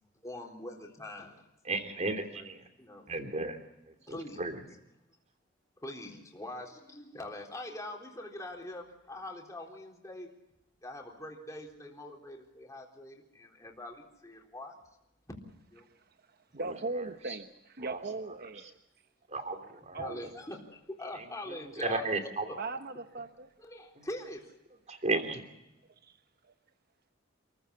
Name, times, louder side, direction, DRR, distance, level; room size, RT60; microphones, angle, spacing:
voice 1, 0.2-1.5 2.4-2.5 2.8-3.2 4.1-4.4 5.8-10.3 10.8-14.8 15.7-15.9 20.0-22.0 22.4-22.6 23.6-24.5, left 1 dB, 15° left, 0 dB, 3.8 m, -43 dB
voice 2, 1.6-2.6 3.1-3.6 3.9-4.5 16.6-16.7 17.3-17.4 17.8-18.0 19.3-20.0 21.5-22.4 24.9-25.4, right 3 dB, 35° right, 6 dB, 3.1 m, -34 dB
voice 3, 16.5-18.7 19.9-20.3 22.6-23.5, right 3 dB, 50° right, 8 dB, 1.1 m, -38 dB
28.0 x 15.0 x 8.3 m, 0.89 s
head